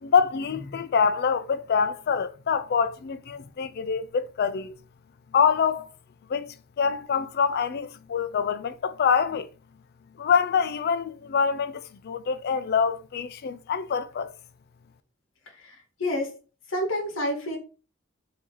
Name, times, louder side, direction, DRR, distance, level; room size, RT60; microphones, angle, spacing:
voice 1, 0.0-4.8 5.3-5.9 6.3-9.5 10.2-14.3, left 6 dB, 55° left, 0.4 m, -25 dB
voice 2, 16.0-16.3 16.7-17.6, left 1 dB, 75° left, 0.9 m, -28 dB
3.1 x 2.7 x 3.7 m
head